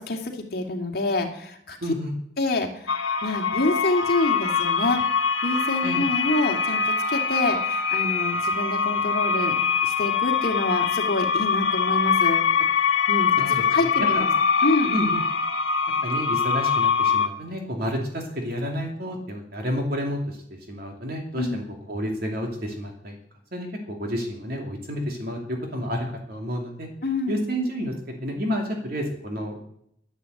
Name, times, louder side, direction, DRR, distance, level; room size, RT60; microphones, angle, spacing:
voice 1, 0.0-1.8 2.4-2.9 3.2-5.1 5.4-9.6 9.8-12.5 13.1-14.3 14.6-14.9 21.4-21.6 27.0-27.5, left 2 dB, 50° left, 2 dB, 2.4 m, -27 dB
voice 2, 1.8-2.1 5.8-6.0 13.4-13.5 13.8-14.3 14.9-15.2 16.0-20.4 20.7-21.6 21.9-23.2 23.5-26.9 27.3-29.6, equal, 50° right, 1 dB, 2.7 m, -30 dB
sound 1, 2.9-17.3, left 6 dB, 80° left, 1.5 m, -23 dB
11.5 x 11.0 x 7.9 m, 0.71 s
head